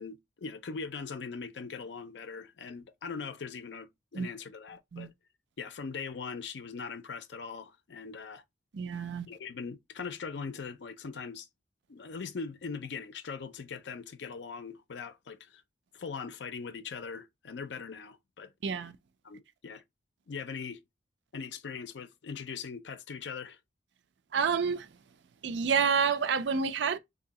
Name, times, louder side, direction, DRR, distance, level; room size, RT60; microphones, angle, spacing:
voice 1, 0.0-5.1 5.6-8.4 9.3-11.5 11.9-15.6 15.9-18.5 19.2-19.8 20.3-20.8 21.3-23.6, left 5 dB, 75° left, 0.5 m, -41 dB
voice 2, 8.7-9.3 18.6-18.9 24.3-24.9 25.4-27.0, right 6 dB, 80° right, 0.4 m, -28 dB
2.8 x 2.7 x 4.0 m
head